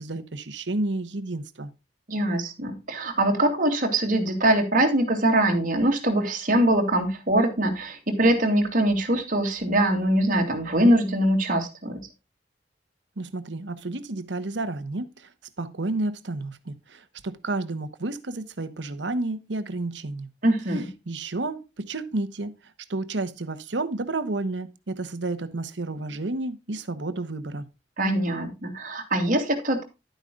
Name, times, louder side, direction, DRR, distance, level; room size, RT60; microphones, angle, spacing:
voice 1, 0.0-1.7 13.2-15.3 15.6-20.3 21.1-22.6 22.9-27.7, right 2 dB, 80° right, 1.1 m, -31 dB
voice 2, 2.1-12.1 20.4-20.9 28.0-29.8, right 1 dB, 50° right, 2.7 m, -23 dB
11.5 x 9.1 x 2.4 m
head